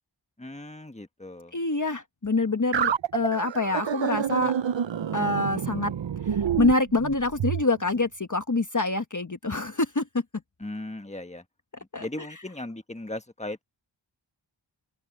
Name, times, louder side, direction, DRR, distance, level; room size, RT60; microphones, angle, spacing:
voice 1, 0.4-1.5 10.6-11.4 12.0-13.6, left 2 dB, 15° left, 1.5 m, -37 dB
voice 2, 1.5-4.5 5.1-5.9 6.3-10.0 11.9-12.3, left 2 dB, 40° left, 1.2 m, -26 dB
sound 1, 2.7-7.6, right 8 dB, 65° right, 0.7 m, -28 dB
open air
wide cardioid pair, 50°, 48 cm